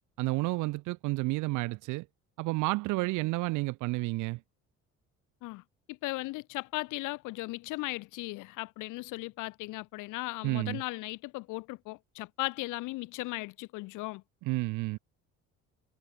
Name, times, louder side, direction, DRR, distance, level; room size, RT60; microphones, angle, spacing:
voice 1, 0.2-2.1 2.4-4.4 10.4-10.8 14.4-15.0, right 22 dB, 80° right, 0.7 m, -31 dB
voice 2, 5.9-14.2, left 22 dB, 85° left, 1.1 m, -37 dB
cardioid pair, 165°, 30 cm